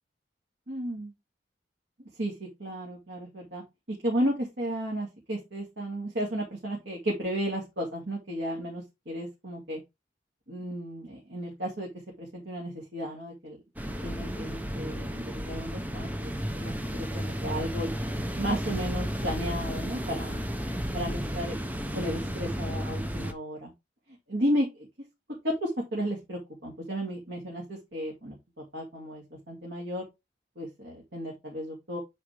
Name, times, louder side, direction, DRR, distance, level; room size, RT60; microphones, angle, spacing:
voice 1, 0.7-1.1 2.2-3.6 4.0-9.8 10.5-11.9 12.2-13.6 14.0-16.3 16.6-17.9 18.3-20.4 20.9-21.6 21.9-23.7 24.3-24.9 25.4-28.4 28.7-30.0 30.6-32.0, equal, 75° right, -2 dB, 2.4 m, -33 dB
sound 1, 13.8-23.3, equal, 10° right, 0.9 m, -33 dB
8.7 x 4.3 x 3.4 m, 0.22 s
head